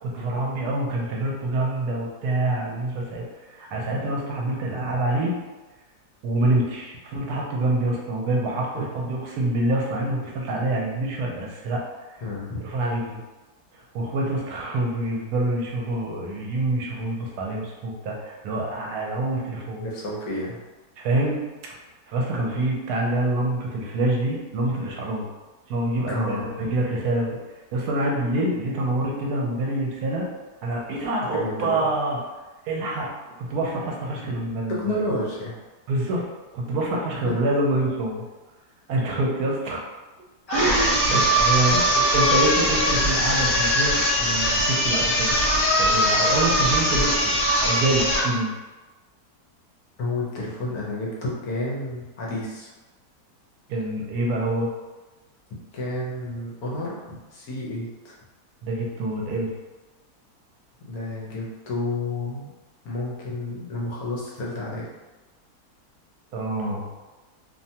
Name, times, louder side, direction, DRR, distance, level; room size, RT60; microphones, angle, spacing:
voice 1, 0.0-3.2 3.5-5.3 6.2-11.8 12.6-13.2 13.9-19.9 21.0-21.4 22.1-25.2 25.7-27.4 27.7-30.3 30.6-32.2 32.7-33.1 33.4-35.0 35.9-36.2 36.5-38.2 38.9-39.8 40.5-45.3 45.8-47.3 47.6-48.5 53.7-54.7 58.6-59.5 66.3-66.9, right 1 dB, 75° right, -1 dB, 1.1 m, -26 dB
voice 2, 8.7-9.1 12.2-12.6 19.8-20.6 26.1-26.7 31.2-31.8 34.2-34.4 34.7-35.5 37.3-37.4 41.7-41.8 50.0-52.7 55.7-58.2 60.8-62.5 62.8-64.9, left 2 dB, 70° left, -4 dB, 1.1 m, -30 dB
sound 1, 40.5-48.3, equal, 50° left, 1.4 m, -21 dB
2.8 x 2.2 x 2.7 m, 1.2 s
omnidirectional pair, 1.7 m